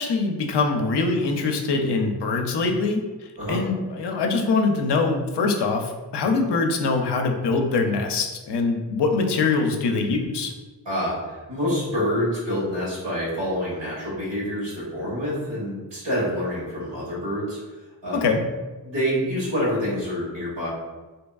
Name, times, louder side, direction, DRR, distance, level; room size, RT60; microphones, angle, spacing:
voice 1, 0.0-10.5 18.1-18.4, left 4 dB, 70° left, 3 dB, 0.5 m, -23 dB
voice 2, 10.8-17.6 18.0-18.2 18.8-20.7, equal, 85° right, -6 dB, 1.5 m, -27 dB
3.4 x 2.8 x 2.3 m, 1.2 s
wide cardioid pair, 115°, 42 cm